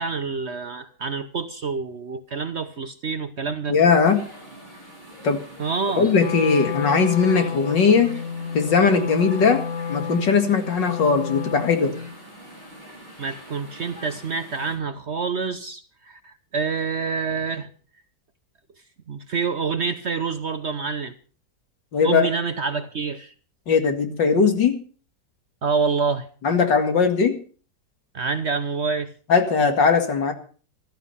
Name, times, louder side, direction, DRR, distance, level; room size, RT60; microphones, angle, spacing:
voice 1, 0.0-3.8 5.6-6.1 13.2-17.7 19.1-21.1 22.0-23.3 25.6-26.3 28.1-29.1, right 5 dB, 50° right, 0.9 m, -27 dB
voice 2, 3.7-4.2 5.2-5.4 6.0-8.1 8.5-12.0 21.9-22.3 23.7-24.8 26.4-27.4 29.3-30.3, left 5 dB, 80° left, 2.6 m, -19 dB
sound 1, 4.1-14.8, equal, 25° left, 6.4 m, -44 dB
Wind instrument woodwind instrument, 6.1-12.1, left 6 dB, 50° left, 1.3 m, -31 dB
14.5 x 13.5 x 5.6 m
omnidirectional pair, 1.9 m